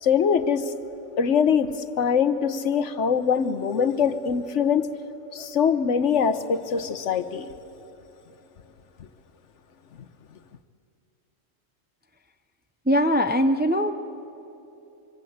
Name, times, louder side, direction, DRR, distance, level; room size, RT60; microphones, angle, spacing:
voice 1, 0.0-0.7 1.2-4.8 5.3-7.5, left 7 dB, 65° left, 11 dB, 1.2 m, -23 dB
voice 2, 12.9-13.9, equal, 10° right, 7 dB, 0.6 m, -21 dB
25.5 x 24.0 x 8.0 m, 2.9 s
omnidirectional pair, 1.4 m